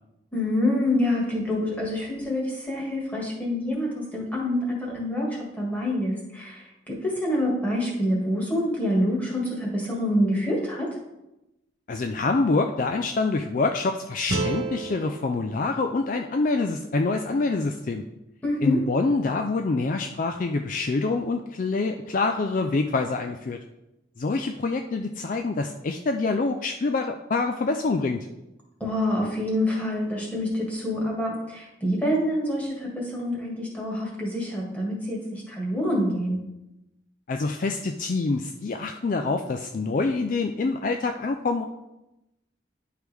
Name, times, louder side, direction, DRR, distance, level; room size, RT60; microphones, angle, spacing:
voice 1, 0.3-10.9 18.4-18.8 28.8-36.4, left 1 dB, 10° left, -4 dB, 1.8 m, -26 dB
voice 2, 11.9-18.0 18.6-23.6 24.2-28.3 37.3-41.6, left 3 dB, 45° left, 5 dB, 0.4 m, -26 dB
sound 1, 14.3-17.4, right 3 dB, 70° right, 1.4 m, -33 dB
10.5 x 4.7 x 3.4 m, 0.94 s
head